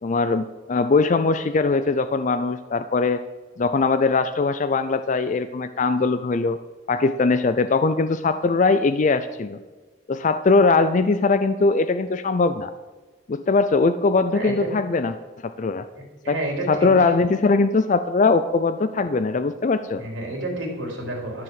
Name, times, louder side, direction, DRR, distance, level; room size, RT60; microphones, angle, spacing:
voice 1, 0.0-3.2 3.6-6.6 6.9-9.6 10.1-12.7 13.3-15.1 15.4-15.8 16.3-16.4 16.7-20.0, left 3 dB, 40° left, 10 dB, 0.4 m, -21 dB
voice 2, 14.3-14.7 15.9-16.9 20.0-21.4, right 1 dB, 85° right, 0 dB, 3.5 m, -30 dB
13.0 x 4.9 x 7.5 m, 1.3 s
head